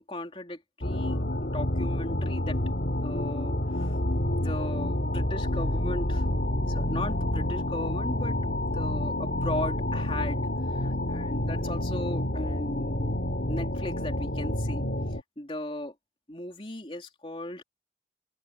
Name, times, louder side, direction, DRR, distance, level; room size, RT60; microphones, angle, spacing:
voice 1, 0.0-2.6 3.0-4.0 4.3-6.2 6.7-15.9 16.3-17.6, left 1 dB, 30° left, 3.3 m, -37 dB
sound 1, 0.8-15.2, left 1 dB, 65° left, 2.7 m, -29 dB
open air
head